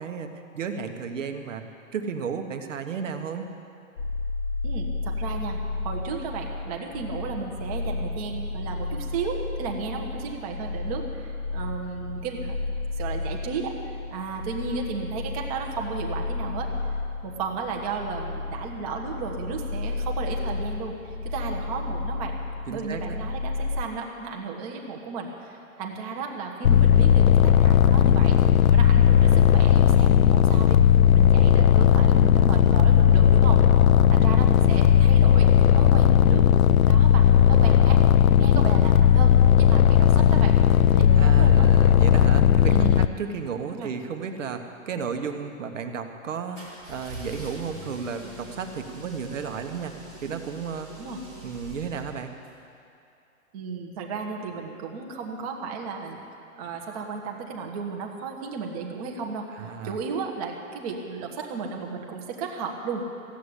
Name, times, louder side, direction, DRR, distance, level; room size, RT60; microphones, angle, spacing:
voice 1, 0.0-1.6 1.9-3.5 22.7-23.2 41.2-50.9 51.4-52.3 59.6-60.0, right 6 dB, 60° right, 6 dB, 1.5 m, -33 dB
sound 1, 4.0-23.8, left 3 dB, 35° left, 0.9 m, -32 dB
voice 2, 4.6-5.6 5.8-12.6 13.0-16.7 17.2-22.4 22.7-28.4 28.7-30.8 31.1-33.6 34.1-36.5 36.9-38.0 38.4-40.6 40.9-41.7 42.7-43.1 43.7-43.9 51.0-51.2 53.5-56.2 56.6-63.0, right 5 dB, 25° right, 1 dB, 1.3 m, -34 dB
sound 2, 26.6-43.1, left 9 dB, 80° left, 0.7 m, -17 dB
sound 3, 46.5-52.5, right 1 dB, 5° right, 0.4 m, -43 dB
15.0 x 8.4 x 9.9 m, 2.6 s
hypercardioid pair, 165°, 42 cm